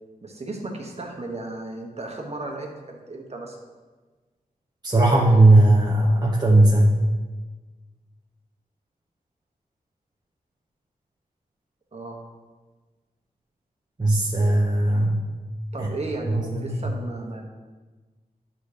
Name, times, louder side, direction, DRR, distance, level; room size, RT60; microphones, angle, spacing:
voice 1, 0.2-3.6 11.9-12.2 15.7-17.4, right 2 dB, 45° right, 1 dB, 1.4 m, -34 dB
voice 2, 4.8-6.9 14.0-15.2 15.8-15.9 16.5-16.8, right 2 dB, 25° right, -3 dB, 1.0 m, -17 dB
10.5 x 4.2 x 5.0 m, 1.3 s
wide cardioid pair, 110°, 15 cm